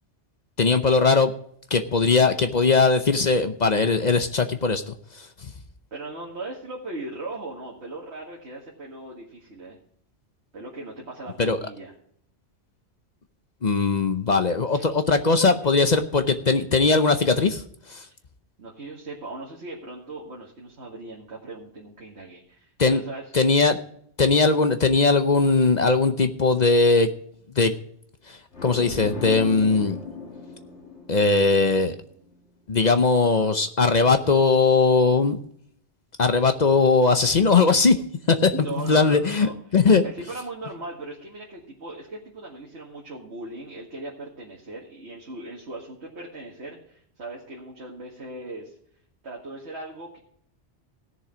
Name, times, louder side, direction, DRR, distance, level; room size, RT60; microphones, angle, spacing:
voice 1, 0.6-1.3 1.7-5.3 11.4-11.6 13.6-17.6 17.9-18.0 22.8-23.0 23.3-23.8 24.2-27.1 27.6-27.7 28.3-30.0 31.1-32.0 32.7-35.4 36.2-38.0 38.3-40.0, left 4 dB, 45° left, 9 dB, 0.8 m, -20 dB
voice 2, 5.9-9.8 10.5-11.9 14.7-14.9 15.4-15.5 18.6-23.3 38.4-39.5 40.0-48.7 49.2-50.2, right 2 dB, 70° right, -3 dB, 2.2 m, -38 dB
sound 1, 28.5-32.2, left 3 dB, 75° left, 2.5 m, -37 dB
16.5 x 7.0 x 5.0 m, 0.65 s
omnidirectional pair, 1.2 m